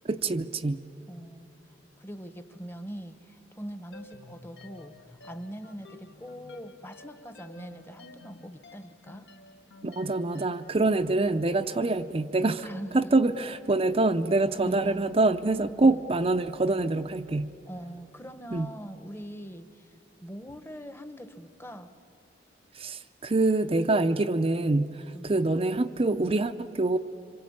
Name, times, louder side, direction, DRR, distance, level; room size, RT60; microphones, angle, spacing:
voice 1, 0.0-0.8 9.8-12.7 12.9-17.5 18.5-18.7 22.7-27.0, right 2 dB, 30° right, 7 dB, 0.6 m, -25 dB
voice 2, 1.1-1.5 2.0-9.3 12.6-13.2 14.6-15.1 15.8-16.0 17.7-19.9 20.2-21.9 25.1-25.3, equal, 15° left, 11 dB, 1.1 m, -42 dB
sound 1, 3.9-10.8, left 2 dB, 65° left, 1.4 m, -51 dB
26.5 x 26.0 x 8.6 m, 2.6 s
head